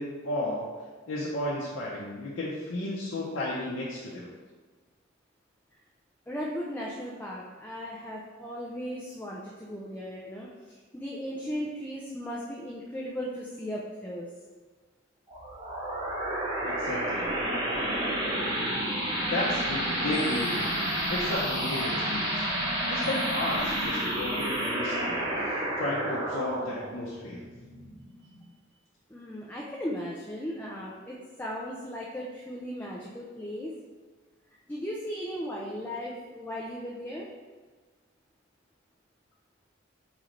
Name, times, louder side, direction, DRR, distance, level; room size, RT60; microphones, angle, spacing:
voice 1, 0.0-4.3 16.6-17.3 19.2-20.8 21.1-22.4 22.9-25.2 25.8-27.4, left 1 dB, 75° left, -6 dB, 0.7 m, -33 dB
voice 2, 6.3-14.3 29.1-33.7 34.5-37.3, equal, 10° left, -4 dB, 0.4 m, -37 dB
sound 1, 15.3-28.4, right 1 dB, 25° right, 0.9 m, -30 dB
4.1 x 3.1 x 3.8 m, 1.4 s
head